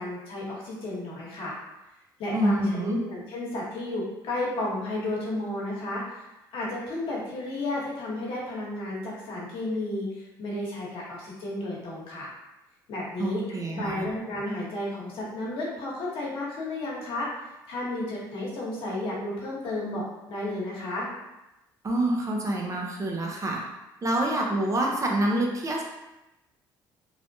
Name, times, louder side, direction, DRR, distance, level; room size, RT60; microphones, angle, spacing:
voice 1, 0.0-1.6 2.2-6.3 6.5-12.3 12.9-13.4 13.7-17.3 17.7-20.0 20.3-21.1, left 1 dB, 65° left, -5 dB, 1.1 m, -32 dB
voice 2, 2.3-3.0 13.2-14.1 21.8-23.6 24.0-25.8, right 1 dB, 35° right, 0 dB, 0.6 m, -27 dB
3.2 x 2.1 x 2.6 m, 0.96 s
supercardioid pair, 65°, 10 cm